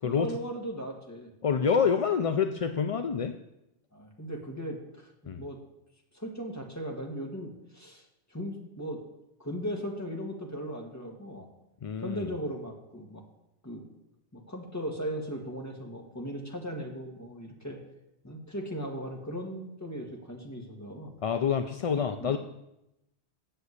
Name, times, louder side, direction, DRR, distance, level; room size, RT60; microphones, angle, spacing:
voice 1, 0.0-1.3 3.9-5.1 5.4-5.6 6.1-8.0 8.3-9.0 9.4-11.5 12.0-13.2 13.6-13.8 14.3-17.8 18.2-21.1 22.2-22.4, equal, 15° left, 0 dB, 1.6 m, -37 dB
voice 2, 1.4-3.3 5.3-5.4 11.8-12.3 21.2-22.4, left 6 dB, 50° left, 7 dB, 0.4 m, -27 dB
7.8 x 6.9 x 8.1 m, 0.87 s
omnidirectional pair, 1.1 m